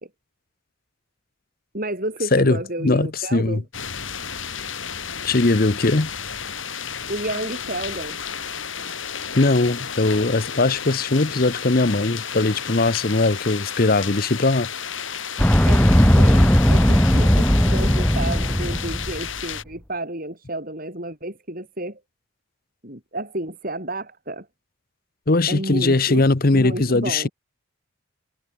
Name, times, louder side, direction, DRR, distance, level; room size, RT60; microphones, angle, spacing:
voice 1, 1.7-3.6 7.1-8.2 15.6-15.8 16.2-22.0 22.8-24.5 25.5-26.2 26.5-27.3, right 1 dB, 45° right, 7.9 m, -31 dB
voice 2, 2.3-3.6 5.2-6.1 9.3-14.7 25.3-27.3, left 2 dB, 45° left, 0.9 m, -20 dB
sound 1, 3.7-19.6, left 7 dB, 70° left, 6.8 m, -32 dB
sound 2, 15.4-19.3, equal, 5° left, 0.9 m, -17 dB
head